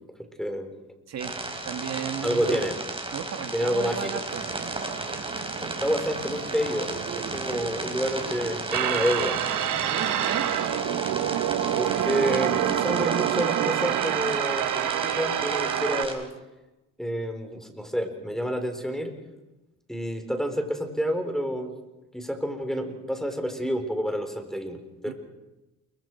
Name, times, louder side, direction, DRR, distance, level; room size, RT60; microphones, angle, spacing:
voice 1, 0.4-0.7 2.2-2.8 3.5-4.2 5.6-9.3 11.8-16.3 17.0-19.1 19.9-21.7 22.1-25.1, equal, ahead, 6 dB, 4.1 m, -29 dB
sound 1, 1.2-16.1, right 2 dB, 20° right, 4.7 m, -34 dB
voice 2, 1.6-2.6 3.1-4.4 9.8-10.5 25.0-25.1, right 7 dB, 60° right, 5 dB, 2.4 m, -34 dB
sound 2, 4.3-13.1, right 7 dB, 45° right, 1.0 m, -39 dB
sound 3, 8.7-16.1, right 11 dB, 75° right, 1.4 m, -26 dB
28.5 x 23.5 x 4.7 m, 1.0 s
cardioid pair, 90°, 30 cm